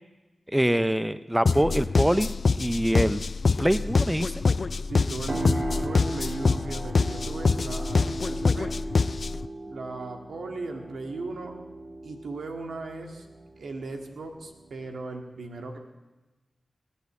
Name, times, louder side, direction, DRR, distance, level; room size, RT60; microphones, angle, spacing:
voice 1, 0.5-2.3 2.6-3.2 3.6-4.3, equal, 10° right, 14 dB, 0.6 m, -24 dB
sound 1, 1.5-9.5, left 4 dB, 65° left, 0.4 m, -25 dB
voice 2, 4.8-8.8 9.7-11.5 12.0-13.3 13.6-15.8, right 3 dB, 85° right, 4 dB, 1.9 m, -37 dB
sound 2, 5.3-15.0, right 2 dB, 55° right, 2.1 m, -37 dB
19.5 x 8.4 x 8.3 m, 1.1 s
cardioid pair, 45°, 0 cm